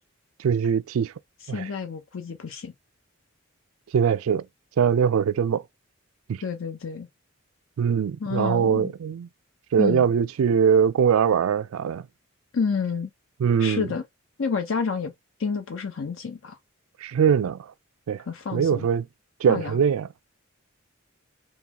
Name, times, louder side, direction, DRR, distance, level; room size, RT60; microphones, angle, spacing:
voice 1, 0.4-1.1 1.5-1.6 3.9-4.4 4.8-5.6 6.3-6.4 7.8-9.3 9.7-12.1 13.4-13.9 17.0-17.7 18.1-18.2 18.5-19.0 19.4-20.1, right 7 dB, 75° right, 0.3 m, -22 dB
voice 2, 1.4-2.7 6.4-7.1 8.2-8.9 9.8-10.0 12.5-13.1 13.6-14.0 14.4-15.1 15.4-16.6 18.2-18.9 19.5-19.8, left 5 dB, 65° left, 0.5 m, -29 dB
3.7 x 2.3 x 2.9 m
head